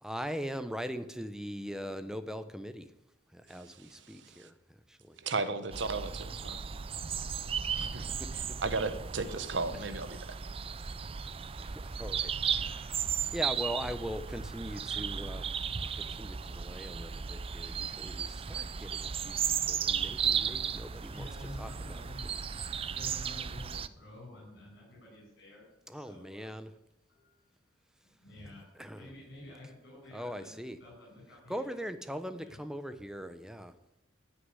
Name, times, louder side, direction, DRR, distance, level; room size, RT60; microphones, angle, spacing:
voice 1, 0.0-2.9 3.3-4.5 4.9-5.1 8.3-8.4 11.6-15.6 16.0-21.3 21.6-22.0 25.9-26.7 28.8-29.1 30.1-30.8 31.5-33.7, equal, 5° right, 10 dB, 0.8 m, -41 dB
voice 2, 4.1-4.5 5.2-6.6 7.8-8.1 8.6-10.4, right 3 dB, 65° right, 12 dB, 1.1 m, -35 dB
sound 1, 5.7-23.9, right 7 dB, 30° right, 0.4 m, -35 dB
voice 3, 21.1-22.3 22.9-25.6 25.9-26.5 27.1-27.4 28.2-28.6 28.9-31.9 32.4-32.6, left 1 dB, 65° left, -6 dB, 7.0 m, -50 dB
14.5 x 6.8 x 9.7 m, 0.89 s
head